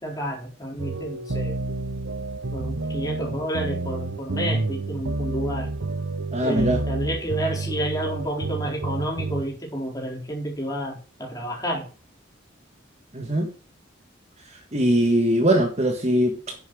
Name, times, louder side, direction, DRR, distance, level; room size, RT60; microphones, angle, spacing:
voice 1, 0.0-1.6 2.5-5.7 6.4-11.8, equal, 20° left, 4.1 m, -30 dB
sound 1, 0.8-9.4, right 2 dB, 75° right, 1.0 m, -29 dB
voice 2, 6.3-6.8 13.1-13.5 14.7-16.5, right 1 dB, 35° right, 1.7 m, -21 dB
10.0 x 8.1 x 6.4 m
head